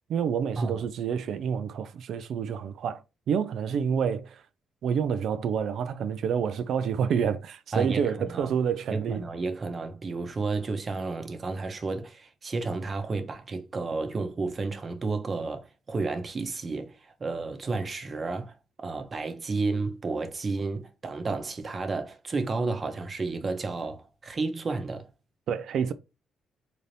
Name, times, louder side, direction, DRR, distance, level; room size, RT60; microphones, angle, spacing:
voice 1, 0.1-4.4 4.8-9.2 25.5-25.9, right 7 dB, 70° right, 0.3 m, -28 dB
voice 2, 7.7-8.5 8.9-25.1, right 3 dB, 35° right, 0.8 m, -32 dB
4.0 x 2.7 x 3.2 m
cardioid pair, 90°, 0 cm